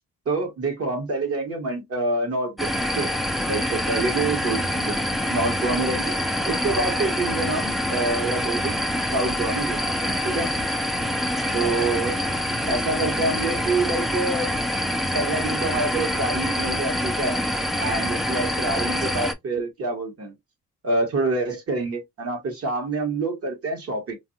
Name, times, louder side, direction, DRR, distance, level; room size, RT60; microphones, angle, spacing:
voice 1, 0.3-3.1 3.5-6.1 6.4-8.8 9.1-10.5 11.5-12.2 12.6-14.5 15.1-17.4 17.8-20.3 20.8-24.2, right 3 dB, 50° right, 1.3 m, -27 dB
sound 1, 2.6-19.3, left 1 dB, ahead, 0.3 m, -26 dB
2.6 x 2.6 x 2.6 m
cardioid pair, 90°, 30 cm